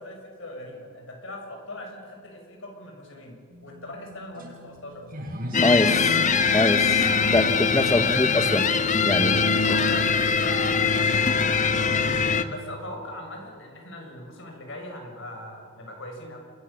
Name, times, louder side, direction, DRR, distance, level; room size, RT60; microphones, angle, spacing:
voice 1, 0.0-3.4 3.6-5.1 8.0-8.3 9.6-12.2 12.5-16.4, left 1 dB, 65° left, 3 dB, 7.1 m, -40 dB
sound 1, 3.5-12.3, equal, 45° right, 5.8 m, -40 dB
sound 2, 5.5-12.4, left 5 dB, 40° left, 1.3 m, -22 dB
voice 2, 5.6-6.2 6.5-8.6 9.1-9.6, left 2 dB, 15° left, 8 dB, 0.9 m, -24 dB
30.0 x 22.0 x 7.3 m, 2.1 s
head